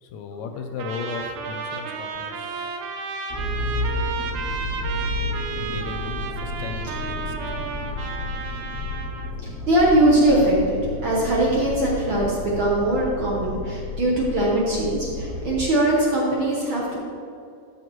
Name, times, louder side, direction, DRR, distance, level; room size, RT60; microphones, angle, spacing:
voice 1, 0.0-2.8 5.6-6.2 6.4-7.3, left 4 dB, 80° left, 5 dB, 1.8 m, -35 dB
Trumpet, 0.8-9.3, right 5 dB, 90° right, 2.1 m, -32 dB
Motor vehicle (road), 3.3-15.6, left 2 dB, 35° left, 0.9 m, -31 dB
voice 2, 9.4-17.0, right 1 dB, 55° right, -4 dB, 1.5 m, -21 dB
12.0 x 6.3 x 3.1 m, 2.5 s
omnidirectional pair, 3.4 m